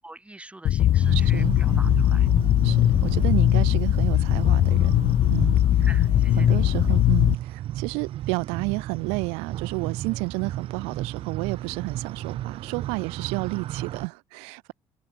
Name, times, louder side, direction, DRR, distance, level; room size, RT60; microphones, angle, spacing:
voice 1, 0.0-2.3 5.8-6.6, right 2 dB, 10° right, 6.5 m, -44 dB
sound 1, 0.6-7.3, left 12 dB, 65° left, 1.7 m, -20 dB
sound 2, 1.0-14.1, right 13 dB, 65° right, 3.6 m, -34 dB
voice 2, 1.1-1.6 2.6-5.0 5.3-5.9 6.4-14.7, right 32 dB, 90° right, 1.2 m, -31 dB
supercardioid pair, 80°, 10 cm